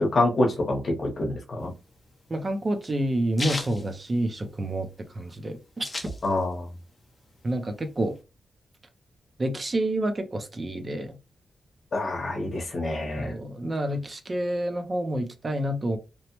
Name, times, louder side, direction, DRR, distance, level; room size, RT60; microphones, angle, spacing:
voice 1, 0.0-1.7 6.2-6.7 11.9-13.3, left 2 dB, 40° left, 1 dB, 0.9 m, -26 dB
sound 1, 1.6-4.8 5.1-5.2 5.4-6.7 7.0-8.2, left 2 dB, 25° left, 0.6 m, -36 dB
voice 2, 2.3-5.9 7.4-8.1 9.4-11.2 13.2-16.0, right 1 dB, 25° right, 7 dB, 0.5 m, -28 dB
3.0 x 2.1 x 2.9 m, 0.28 s
wide cardioid pair, 145°, 0 cm